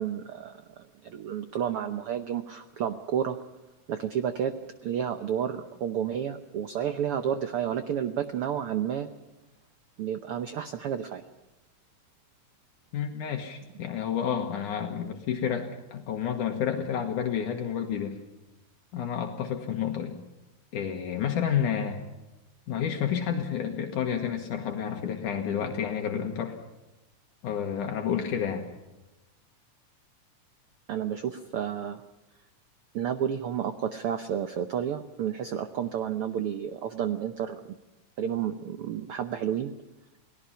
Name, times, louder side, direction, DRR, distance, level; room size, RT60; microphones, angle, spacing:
voice 1, 0.0-3.4 3.9-4.5 4.8-9.1 10.0-11.2 30.9-32.0 32.9-37.8 38.2-39.7, right 9 dB, 90° right, 9 dB, 1.2 m, -31 dB
voice 2, 12.9-18.2 18.9-20.2 20.7-22.0 22.7-26.6 27.4-28.6, left 8 dB, 70° left, 4 dB, 2.9 m, -30 dB
29.0 x 18.5 x 5.8 m, 1.0 s
omnidirectional pair, 3.8 m